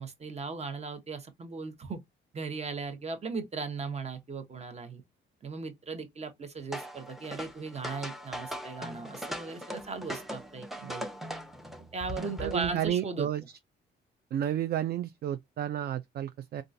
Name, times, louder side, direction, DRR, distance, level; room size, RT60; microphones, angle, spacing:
voice 1, 0.0-2.0 2.3-5.0 5.4-11.1 11.9-13.3, right 4 dB, 35° right, 0.9 m, -37 dB
sound 1, 6.7-12.9, equal, ahead, 0.6 m, -40 dB
voice 2, 12.4-13.4 14.3-16.6, right 11 dB, 55° right, 0.4 m, -31 dB
3.7 x 2.4 x 2.5 m
cardioid pair, 90°, 20 cm